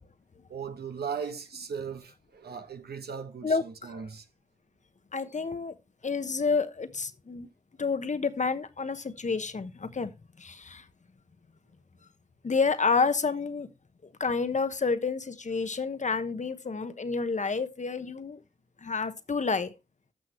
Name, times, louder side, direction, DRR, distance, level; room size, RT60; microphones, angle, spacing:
voice 1, 0.5-4.2, right 6 dB, 75° right, 1.2 m, -38 dB
voice 2, 3.4-4.0 5.1-5.7 6.0-7.5 7.8-10.1 10.4-10.8 12.4-13.7 14.2-18.4 18.8-19.7, left 4 dB, 45° left, 1.1 m, -29 dB
13.5 x 6.2 x 3.1 m
cardioid pair, 45°, 17 cm